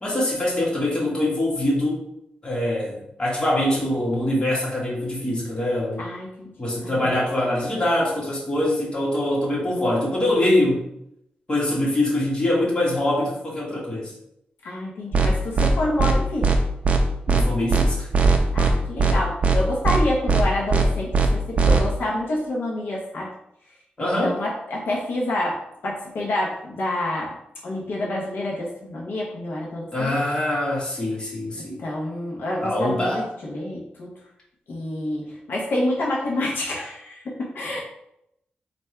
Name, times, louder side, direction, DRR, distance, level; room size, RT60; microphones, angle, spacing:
voice 1, 0.0-2.0 2.4-6.1 6.6-10.8 11.5-14.1 17.3-18.1 24.0-24.4 29.9-31.8 32.6-33.2, left 1 dB, 25° left, -4 dB, 1.4 m, -23 dB
voice 2, 6.0-6.5 6.8-7.1 14.6-16.5 18.5-23.3 24.0-27.3 27.6-30.1 31.8-34.1 34.7-37.8, left 1 dB, 75° left, -3 dB, 0.9 m, -28 dB
sound 1, 15.1-15.3 15.6-15.7 16.0-16.1 16.4-16.6 16.8-17.0 17.3-17.4 17.7-17.8 18.1-18.7 19.0-19.1 19.4-19.6 19.8-20.0 20.3-20.4 20.7-20.8 21.1-21.3 21.6-21.8, right 5 dB, 40° right, 0.5 m, -18 dB
3.4 x 2.6 x 4.4 m, 0.79 s
wide cardioid pair, 115°, 3 cm